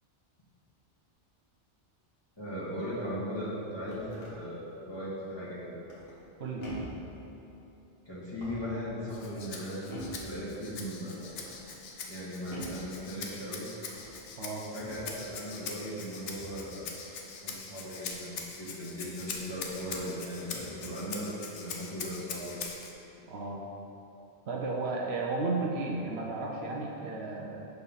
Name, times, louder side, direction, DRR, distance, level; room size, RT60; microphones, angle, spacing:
voice 1, 2.4-5.7 8.0-11.4 12.0-13.7 14.7-16.9 17.4-22.6, equal, 25° left, -9 dB, 1.6 m, -38 dB
sound 1, 3.9-4.4 5.9-6.3 6.6-7.1 8.2-8.8 9.9-10.3 11.1-11.6 12.5-12.9 13.8-14.2 14.8-15.1 16.3-16.6 18.8-18.9 19.7-20.1 20.4-20.8, right 1 dB, 60° left, 1.7 m, -44 dB
Rattle (instrument), 9.1-22.9, left 5 dB, 85° left, 1.0 m, -42 dB
voice 2, 14.4-14.7 23.3-23.7 24.5-27.7, right 3 dB, 70° right, -1 dB, 0.9 m, -33 dB
6.6 x 4.1 x 5.4 m, 2.9 s
omnidirectional pair, 1.2 m